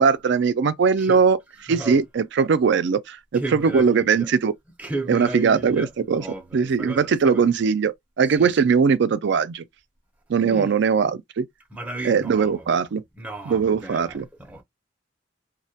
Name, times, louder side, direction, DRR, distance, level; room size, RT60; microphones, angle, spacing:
voice 1, 0.0-1.4 1.7-4.5 5.1-6.2 6.5-9.6 10.3-11.5 12.0-13.0 13.5-14.2, right 5 dB, 65° right, 0.4 m, -20 dB
voice 2, 1.7-2.0 3.3-4.3 4.8-7.5 8.4-8.6 10.4-10.8 11.7-12.6 13.2-14.6, right 2 dB, 10° right, 0.6 m, -34 dB
2.2 x 2.1 x 2.7 m
head